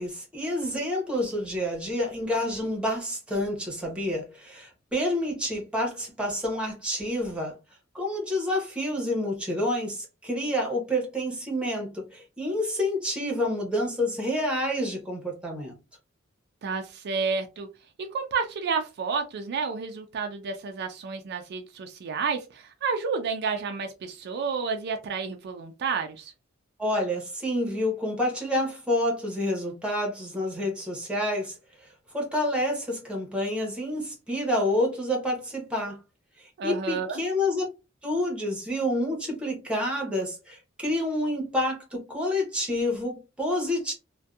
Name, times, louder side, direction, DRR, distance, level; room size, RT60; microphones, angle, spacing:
voice 1, 0.0-7.5 7.9-15.7 26.8-31.5 32.1-36.0 36.4-37.6 38.0-43.9, left 1 dB, 5° right, 0.8 m, -28 dB
voice 2, 16.6-17.7 18.0-26.3 36.6-37.2, right 5 dB, 55° right, 0.4 m, -30 dB
2.6 x 2.2 x 2.3 m
head